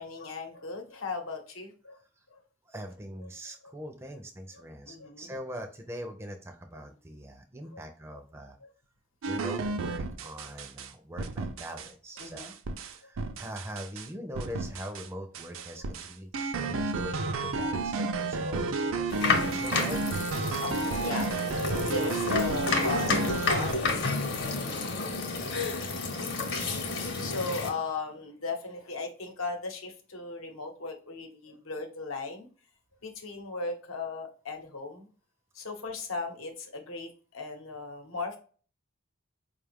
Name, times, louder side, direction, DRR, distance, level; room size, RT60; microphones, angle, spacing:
voice 1, 0.0-2.0 3.2-3.3 3.6-3.7 4.9-5.3 8.6-8.7 12.2-12.5 15.7-15.8 20.6-21.3 21.6-24.2 24.6-24.7 27.2-32.5 33.0-35.1 35.5-38.4, left 3 dB, 85° left, 4 dB, 0.9 m, -37 dB
voice 2, 2.7-8.6 9.2-12.6 12.9-19.2 19.4-20.2 24.6-25.0, equal, 10° right, 4 dB, 0.4 m, -42 dB
sound 1, 9.2-10.9 11.2-11.9 12.2-14.1 14.4-15.1 15.3-23.7, right 3 dB, 80° right, 0.5 m, -32 dB
sound 2, 19.1-27.7, left 3 dB, 55° left, 0.8 m, -30 dB
4.8 x 2.3 x 3.4 m, 0.40 s
head